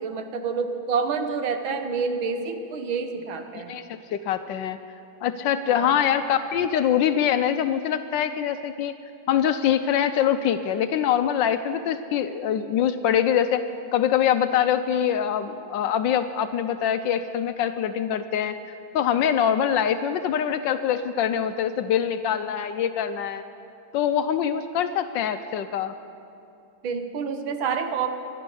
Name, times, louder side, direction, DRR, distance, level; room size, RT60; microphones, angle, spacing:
voice 1, 0.0-3.7 5.7-5.9 26.8-28.1, right 5 dB, 75° right, 7 dB, 1.8 m, -28 dB
voice 2, 3.5-4.8 5.2-8.9 9.3-13.6 13.9-18.6 18.9-23.4 23.9-25.9, left 9 dB, 75° left, 10 dB, 1.1 m, -24 dB
21.0 x 11.5 x 5.5 m, 2.6 s
omnidirectional pair, 2.3 m